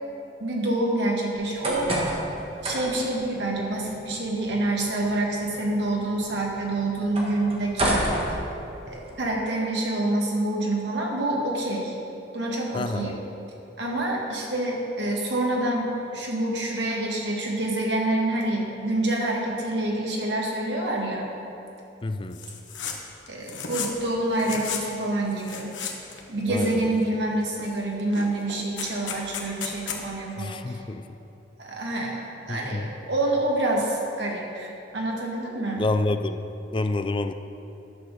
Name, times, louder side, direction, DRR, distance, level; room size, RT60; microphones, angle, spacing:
voice 1, 0.4-1.9 2.6-8.2 8.9-11.9 12.3-13.1 13.8-21.3 23.3-25.8 26.3-30.8 31.6-32.2 32.5-35.9, right 1 dB, 65° right, -2 dB, 1.9 m, -27 dB
sound 1, 1.3-9.1, right 1 dB, 30° right, 1.6 m, -32 dB
voice 2, 12.7-13.2 22.0-22.4 26.5-26.9 30.4-31.1 32.5-32.9 35.8-36.4 36.7-37.3, left 2 dB, 30° left, 9 dB, 0.4 m, -28 dB
sound 2, 22.3-23.0 23.3-24.0 24.3-24.9 25.3-26.2 26.5-27.1 27.6-27.7 28.0-30.0, left 6 dB, 85° left, 1.2 m, -34 dB
10.5 x 6.0 x 6.6 m, 2.9 s
head